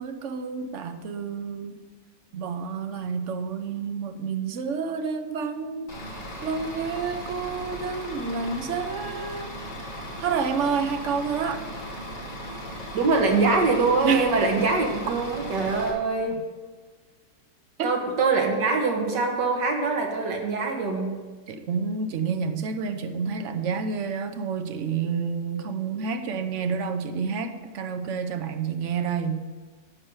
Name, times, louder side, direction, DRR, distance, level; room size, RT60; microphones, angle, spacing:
voice 1, 0.0-1.9 2.3-5.9 6.4-9.6 10.2-11.7 14.0-14.3 14.6-14.7 16.3-16.4 17.8-17.9 21.5-29.5, right 5 dB, 60° right, 7 dB, 0.8 m, -29 dB
Bus / Idling, 5.9-15.9, equal, 25° left, 2.0 m, -37 dB
voice 2, 12.9-16.4 17.8-21.1, right 3 dB, 75° right, 2 dB, 2.1 m, -23 dB
11.0 x 4.6 x 7.9 m, 1.4 s
omnidirectional pair, 1.9 m